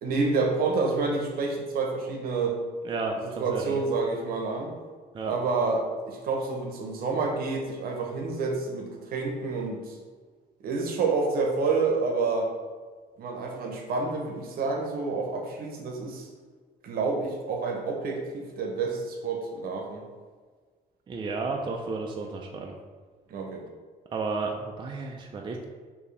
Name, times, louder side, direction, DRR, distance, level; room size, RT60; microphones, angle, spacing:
voice 1, 0.0-2.6 3.2-4.7 5.2-10.0 10.6-12.5 13.2-16.3 16.8-20.0 23.3-23.7, right 4 dB, 65° right, 2 dB, 0.8 m, -28 dB
voice 2, 2.8-3.8 5.1-5.3 21.1-22.7 24.1-25.6, right 3 dB, 30° right, 1 dB, 0.4 m, -32 dB
4.6 x 2.7 x 3.2 m, 1.5 s
cardioid pair, 110°, 17 cm